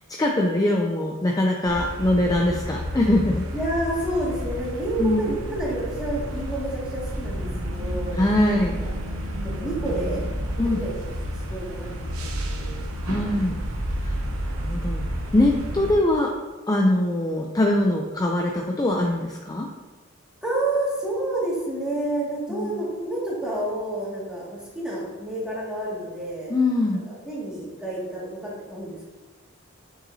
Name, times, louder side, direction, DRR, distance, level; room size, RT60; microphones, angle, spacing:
voice 1, 0.1-3.4 5.0-5.3 8.1-8.8 10.6-10.8 13.0-13.6 14.0-14.2 14.6-15.0 15.3-16.3 16.7-19.7 22.5-22.8 26.5-27.0, left 1 dB, 15° left, 1 dB, 0.4 m, -22 dB
sound 1, 1.6-15.9, equal, 85° right, 0.9 m, -31 dB
voice 2, 3.5-8.9 9.3-10.2 10.8-10.9 11.5-12.8 20.4-26.5 27.1-29.1, right 1 dB, 5° right, -7 dB, 2.0 m, -29 dB
8.3 x 5.8 x 2.7 m, 1.2 s
head